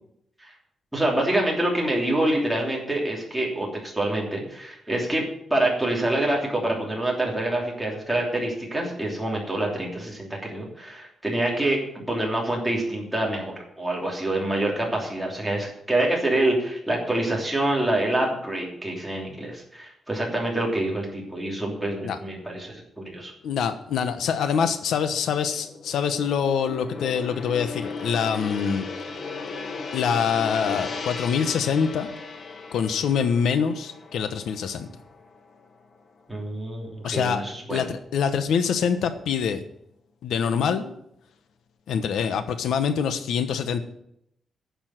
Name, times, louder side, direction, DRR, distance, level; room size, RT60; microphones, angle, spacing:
voice 1, 0.9-11.8 12.1-23.3 36.3-37.8, right 1 dB, 5° right, -2 dB, 3.0 m, -26 dB
voice 2, 23.4-28.9 29.9-32.1 32.7-34.9 37.0-37.4 37.7-39.6 40.2-40.9 41.9-43.8, left 7 dB, 90° left, 9 dB, 1.1 m, -25 dB
Gong, 23.8-36.2 36.5-36.8, left 4 dB, 45° left, 1.4 m, -37 dB
10.5 x 7.1 x 9.2 m, 0.75 s
wide cardioid pair, 175°, 0 cm